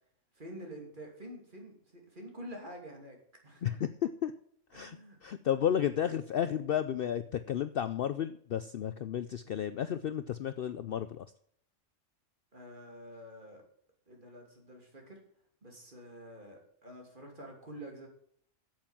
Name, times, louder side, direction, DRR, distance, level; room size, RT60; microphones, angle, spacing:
voice 1, 0.3-3.2 3.4-3.8 4.7-5.2 12.5-13.6 14.1-15.2 15.6-18.1, equal, 40° right, 1 dB, 2.9 m, -48 dB
voice 2, 3.6-4.3 4.7-11.3, left 9 dB, 60° left, 12 dB, 0.6 m, -32 dB
9.0 x 7.8 x 7.2 m, 0.66 s
omnidirectional pair, 1.3 m